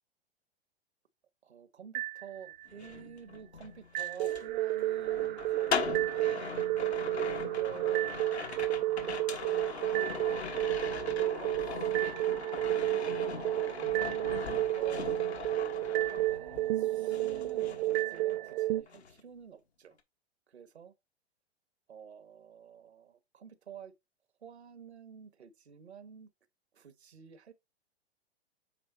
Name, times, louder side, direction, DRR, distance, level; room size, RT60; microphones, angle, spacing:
voice 1, 1.4-9.7 10.4-12.9 13.4-15.1 16.3-20.0 20.5-20.9 21.9-23.9 24.4-26.3 26.7-27.5, right 7 dB, 85° right, 1.0 m, -50 dB
sound 1, 1.9-2.9 3.9-18.8, right 16 dB, 50° right, 0.6 m, -31 dB
sound 2, 2.7-16.8 17.1-18.6 18.9-19.2, left 6 dB, 85° left, 1.4 m, -40 dB
8.6 x 3.5 x 4.9 m
hypercardioid pair, 105°, 32 cm